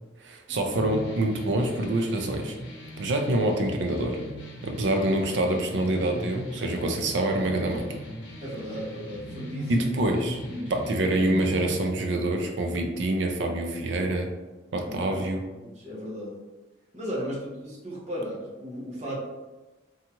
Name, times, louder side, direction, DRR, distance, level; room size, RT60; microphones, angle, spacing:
voice 1, 0.2-2.6 3.0-4.2 4.6-7.9 9.7-10.4 10.7-14.3 14.7-15.4, right 1 dB, 70° right, 3 dB, 0.4 m, -26 dB
sound 1, 0.7-11.9, right 1 dB, 70° left, 0.7 m, -39 dB
voice 2, 8.4-10.0 10.5-10.8 14.8-15.3 15.6-16.4 16.9-19.2, equal, 35° right, -5 dB, 0.8 m, -35 dB
2.7 x 2.3 x 2.8 m, 1.2 s
head